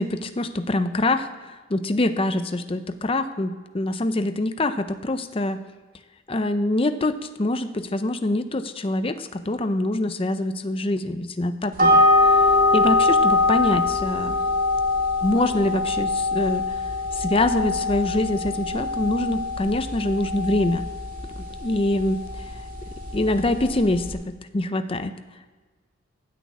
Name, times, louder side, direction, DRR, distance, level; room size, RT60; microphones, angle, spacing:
voice 1, 0.0-5.6 6.3-12.4 12.7-14.4 15.2-16.8 17.1-20.9 21.6-22.2 23.1-25.1, left 2 dB, 30° left, 9 dB, 0.6 m, -25 dB
sound 1, 11.8-24.1, left 2 dB, 45° right, 2.1 m, -23 dB
13.0 x 6.4 x 9.5 m, 1.3 s
head